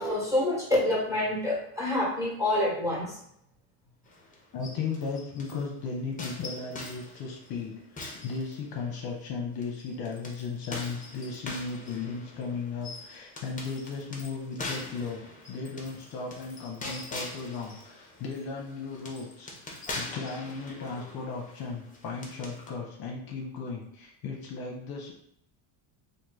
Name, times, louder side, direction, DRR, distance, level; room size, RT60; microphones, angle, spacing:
voice 1, 0.0-3.2, left 1 dB, 5° right, -5 dB, 1.3 m, -27 dB
sound 1, 4.1-5.7 6.2-9.0 9.6-22.7, left 2 dB, 15° left, 0.8 m, -43 dB
voice 2, 4.5-15.2 15.5-25.1, left 4 dB, 50° left, 0 dB, 0.8 m, -36 dB
3.0 x 2.7 x 3.8 m, 0.72 s
cardioid pair, 125°, 46 cm